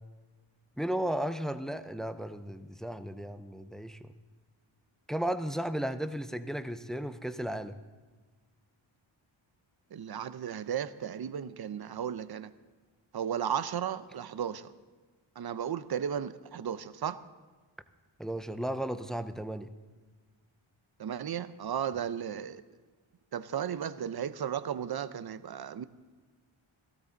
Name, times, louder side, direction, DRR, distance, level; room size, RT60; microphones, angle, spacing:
voice 1, 0.8-4.1 5.1-7.8 18.2-19.7, right 1 dB, ahead, 10 dB, 0.4 m, -34 dB
voice 2, 9.9-12.5 13.1-14.7 15.4-17.2 21.0-22.6 23.3-25.8, right 8 dB, 50° right, 13 dB, 0.6 m, -35 dB
17.0 x 15.5 x 4.0 m, 1.4 s
wide cardioid pair, 175°, 49 cm